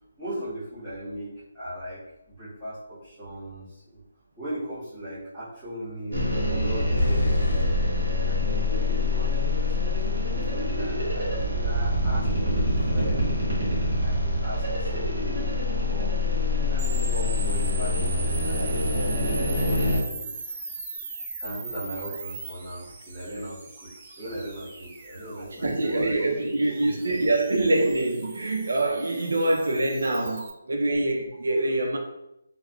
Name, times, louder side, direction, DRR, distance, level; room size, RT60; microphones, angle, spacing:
voice 1, 0.2-2.0 2.3-4.0 4.4-7.6 7.9-12.3 12.6-13.4 14.0-16.2 16.7-20.4 21.4-26.3 26.8-27.0 29.3-29.4, right 1 dB, 5° left, 1.5 m, -38 dB
sound 1, 6.1-20.0, left 2 dB, 50° right, 1.4 m, -25 dB
sound 2, 6.9-8.1, left 2 dB, 80° left, 0.5 m, -27 dB
sound 3, 16.8-30.5, right 3 dB, 20° right, 0.3 m, -39 dB
voice 2, 25.6-32.0, right 2 dB, 70° right, 0.6 m, -25 dB
3.4 x 2.1 x 2.3 m
hypercardioid pair, 175°, 0 cm